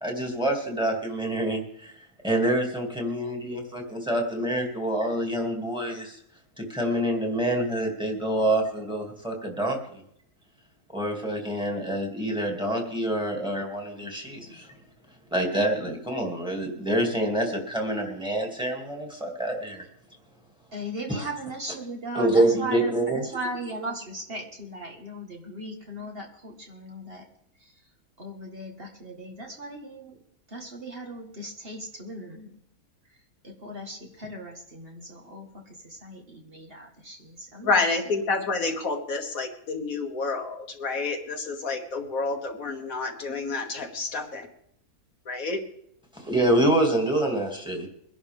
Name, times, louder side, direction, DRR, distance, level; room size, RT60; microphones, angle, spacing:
voice 1, 0.0-1.9 2.2-6.2 6.6-10.0 10.9-14.6 15.3-19.8 22.2-23.2 46.1-47.9, right 1 dB, 5° right, 1 dB, 2.3 m, -26 dB
voice 2, 14.0-14.6 20.7-27.3 27.6-27.8 28.2-30.2 30.5-32.6 33.1-38.0 38.3-38.4, right 1 dB, 40° right, 1 dB, 1.8 m, -38 dB
voice 3, 37.6-44.5 45.3-45.6, left 3 dB, 65° left, 4 dB, 1.8 m, -29 dB
22.5 x 11.0 x 3.5 m, 0.71 s
omnidirectional pair, 1.6 m